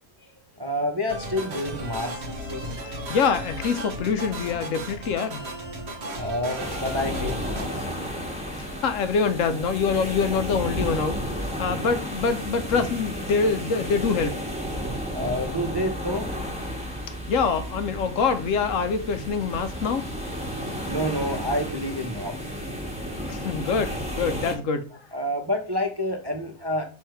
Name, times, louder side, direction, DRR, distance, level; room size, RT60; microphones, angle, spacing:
voice 1, 0.6-2.9 5.9-8.8 15.0-16.4 20.9-22.4 23.1-23.3 25.1-26.8, left 1 dB, 30° right, 0.5 m, -29 dB
sound 1, 1.1-7.6, right 1 dB, 50° right, 1.5 m, -35 dB
voice 2, 2.9-5.5 8.8-11.2 11.6-14.4 17.3-20.1 23.3-24.9, left 5 dB, 65° left, 1.0 m, -25 dB
sound 2, 6.6-24.5, equal, 5° right, 1.6 m, -32 dB
6.5 x 3.6 x 4.4 m
omnidirectional pair, 1.5 m